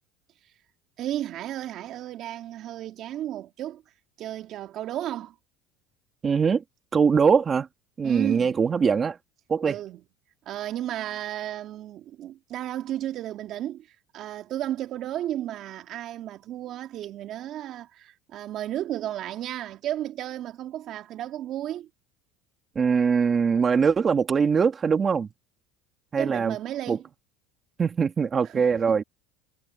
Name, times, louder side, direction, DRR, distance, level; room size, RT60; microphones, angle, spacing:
voice 1, 1.0-3.8 4.2-5.3 8.0-8.6 9.6-10.0 10.5-21.9 26.2-27.0 28.5-29.0, right 12 dB, 50° right, 2.3 m, -33 dB
voice 2, 6.2-6.6 6.9-7.7 8.0-9.2 9.5-9.8 22.8-25.3 26.1-26.6 26.9-27.0 27.8-29.0, right 6 dB, 30° right, 2.2 m, -22 dB
supercardioid pair, 110°, 0 cm